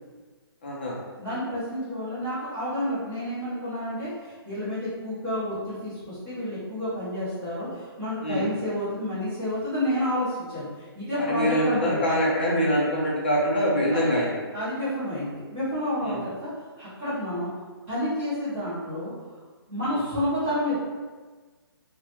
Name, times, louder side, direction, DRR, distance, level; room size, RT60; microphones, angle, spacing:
voice 1, 0.6-1.0 8.2-8.5 11.2-14.3 16.0-16.2 19.8-19.9, equal, 25° left, -5 dB, 0.5 m, -24 dB
voice 2, 1.2-12.0 13.9-14.0 14.5-16.5 16.8-17.5 17.9-19.1 19.7-20.7, left 1 dB, 15° right, -15 dB, 0.9 m, -30 dB
3.4 x 2.1 x 2.9 m, 1.4 s
hypercardioid pair, 180°, 13 cm